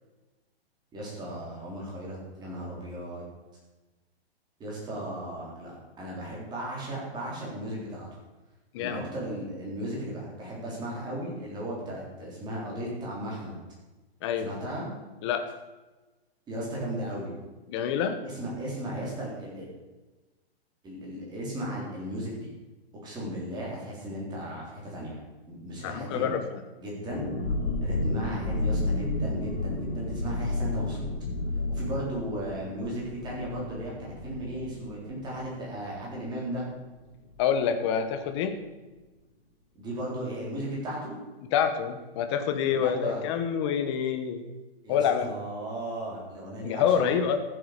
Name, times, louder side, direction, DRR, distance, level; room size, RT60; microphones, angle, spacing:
voice 1, 0.9-3.2 4.6-5.7 6.0-8.1 8.8-13.6 14.4-14.9 16.5-17.3 18.2-19.7 20.8-22.5 23.0-26.3 26.8-27.3 27.8-31.1 31.7-36.7 39.8-41.2 42.7-43.2 44.8-47.0, right 1 dB, 15° right, -4 dB, 3.8 m, -36 dB
voice 2, 14.2-14.5 15.2-15.5 17.7-18.2 25.8-26.6 37.4-38.6 41.5-44.4 44.9-45.3 46.6-47.4, left 8 dB, 25° left, 8 dB, 1.1 m, -27 dB
sound 1, 27.1-36.5 36.7-36.8 37.2-37.5, left 2 dB, 85° left, 3.4 m, -32 dB
14.0 x 7.9 x 6.6 m, 1.2 s
hypercardioid pair, 165°, 32 cm